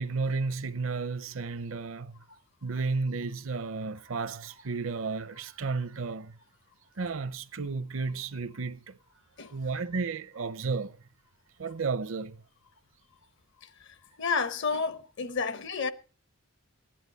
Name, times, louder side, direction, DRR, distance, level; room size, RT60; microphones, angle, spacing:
voice 1, 0.0-2.2 2.6-6.4 7.0-8.9 9.5-11.0 11.6-12.4, right 4 dB, 65° right, 0.6 m, -33 dB
voice 2, 14.2-15.9, left 5 dB, 55° left, 0.9 m, -30 dB
16.5 x 10.5 x 4.0 m
head